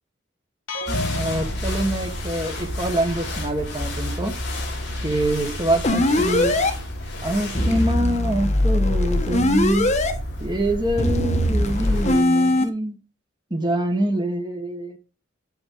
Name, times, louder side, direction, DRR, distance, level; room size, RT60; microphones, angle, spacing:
sound 1, 0.7-2.7, left 1 dB, 80° left, 1.8 m, -31 dB
sound 2, 0.9-12.2, left 1 dB, 55° left, 4.2 m, -31 dB
voice 1, 1.1-4.3 5.0-6.5 7.2-9.9 10.4-13.0 13.5-15.0, right 1 dB, 20° right, 4 dB, 1.5 m, -25 dB
sound 3, 5.8-6.7 7.5-10.1 11.0-12.6, left 1 dB, 35° left, 1.3 m, -21 dB
8.3 x 8.1 x 3.9 m, 0.31 s
head